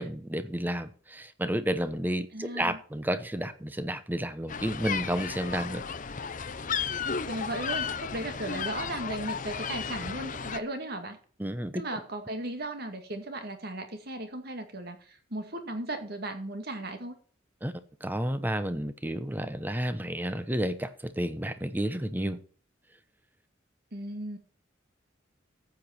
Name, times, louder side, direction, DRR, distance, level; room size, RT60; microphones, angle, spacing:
voice 1, 0.0-5.8 11.4-11.8 17.6-17.7 18.0-22.4, right 1 dB, 10° right, 0.9 m, -31 dB
voice 2, 2.3-2.8 7.3-11.2 11.7-17.2 23.9-24.4, right 1 dB, 55° right, 2.2 m, -36 dB
sound 1, 4.5-10.6, left 6 dB, 45° left, 0.8 m, -34 dB
14.0 x 8.3 x 4.4 m
head